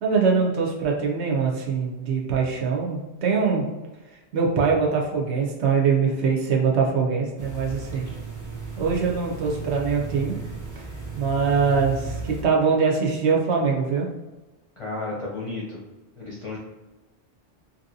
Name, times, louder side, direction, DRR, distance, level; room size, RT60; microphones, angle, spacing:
voice 1, 0.0-3.6 4.3-8.0 8.8-10.4 11.1-14.1, right 5 dB, 75° right, -1 dB, 0.9 m, -23 dB
sound 1, 7.4-12.4, right 4 dB, 25° right, 0.4 m, -35 dB
voice 2, 14.8-15.8 16.2-16.6, left 2 dB, 35° left, -5 dB, 0.6 m, -32 dB
2.9 x 2.7 x 2.6 m, 1.1 s
omnidirectional pair, 1.2 m